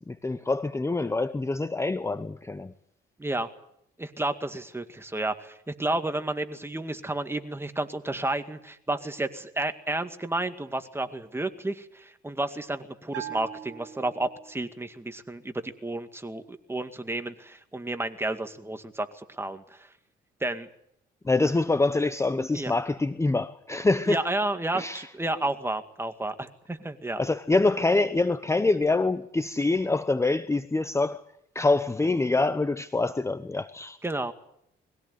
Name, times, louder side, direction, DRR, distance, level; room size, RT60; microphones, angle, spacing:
voice 1, 0.1-2.7 21.2-24.2 24.7-25.1 27.2-31.2 31.5-34.0, left 3 dB, 15° left, 0.8 m, -25 dB
voice 2, 4.0-19.9 20.4-20.7 22.5-22.7 24.1-27.2 34.0-34.3, right 2 dB, 10° right, 2.1 m, -31 dB
Bell, 13.1-14.8, right 11 dB, 70° right, 3.8 m, -41 dB
21.5 x 16.5 x 9.8 m
cardioid pair, 90°, 20 cm